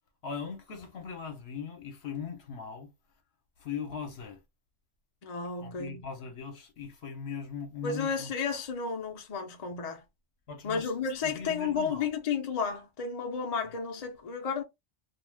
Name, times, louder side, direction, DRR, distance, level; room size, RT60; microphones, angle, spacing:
voice 1, 0.2-2.9 3.6-4.4 5.6-8.3 10.5-10.9 11.2-12.1, left 6 dB, 65° left, 1.0 m, -39 dB
voice 2, 5.2-6.0 7.8-10.0 10.6-14.6, left 5 dB, 40° left, 0.6 m, -32 dB
2.4 x 2.3 x 3.3 m
omnidirectional pair, 1.2 m